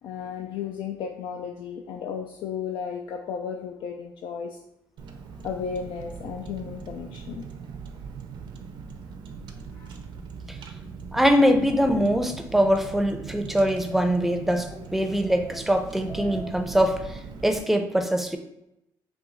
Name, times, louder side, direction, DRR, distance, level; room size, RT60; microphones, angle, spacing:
voice 1, 0.0-4.6 5.4-7.5 9.7-9.9, left 7 dB, 80° left, 2 dB, 0.4 m, -34 dB
Car, 5.0-17.6, right 5 dB, 75° right, 0.6 m, -40 dB
voice 2, 11.1-18.4, equal, 5° right, 6 dB, 0.5 m, -23 dB
Speech, 11.9-12.1 12.5-12.8 13.2-13.3 13.7-14.3 14.7-14.9 15.2-15.6 15.9-17.0, left 1 dB, 25° left, 0.9 m, -43 dB
5.9 x 2.3 x 3.8 m, 0.84 s
cardioid pair, 100°, 8 cm